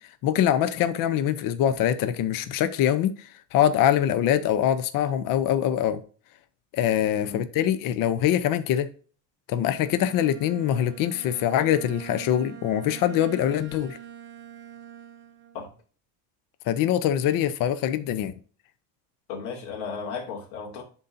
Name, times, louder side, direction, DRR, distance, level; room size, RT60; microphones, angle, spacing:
voice 1, 0.2-6.0 6.7-8.9 9.5-14.0 16.7-18.3, left 10 dB, 50° left, 0.7 m, -24 dB
Bowed string instrument, 9.6-15.7, right 10 dB, 25° right, 0.6 m, -44 dB
voice 2, 19.3-20.8, left 5 dB, 80° left, 2.6 m, -35 dB
11.0 x 3.9 x 2.6 m
cardioid pair, 150°, 42 cm